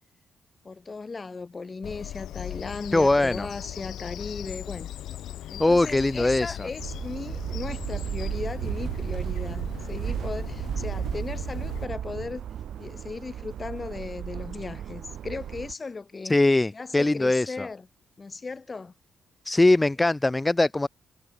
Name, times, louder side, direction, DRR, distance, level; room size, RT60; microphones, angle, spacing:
voice 1, 0.6-4.9 5.5-12.4 12.8-16.4 16.7-17.9 18.2-18.9, left 4 dB, 35° left, 6.7 m, -37 dB
Bird vocalization bird call bird song, 1.8-11.9, left 12 dB, 70° left, 3.8 m, -39 dB
voice 2, 2.9-3.5 5.6-6.6 16.2-17.7 19.4-20.9, left 2 dB, 20° left, 0.9 m, -21 dB
sound 1, 6.8-15.7, right 10 dB, 65° right, 1.6 m, -34 dB
hypercardioid pair, 40°, 0 cm